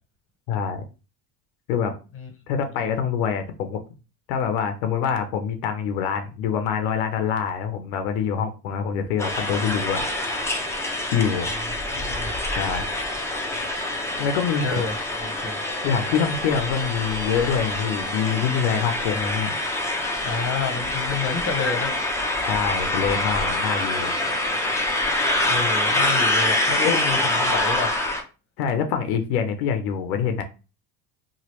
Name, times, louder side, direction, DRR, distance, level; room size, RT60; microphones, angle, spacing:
voice 1, 0.5-0.8 1.7-1.9 2.5-3.8 4.3-10.0 10.3-10.5 11.1-11.5 12.5-12.9 14.2-14.9 15.8-19.6 22.4-24.1 26.8-27.0 28.6-30.4, left 7 dB, 85° left, 7 dB, 0.6 m, -25 dB
sound 1, 9.2-28.2, left 1 dB, 5° left, 0.6 m, -25 dB
voice 2, 11.9-12.3 14.6-14.9 15.2-15.6 20.2-22.0 25.5-27.9, left 5 dB, 30° left, 4 dB, 1.0 m, -29 dB
3.0 x 2.5 x 2.9 m, 0.32 s
supercardioid pair, 95°, 43 cm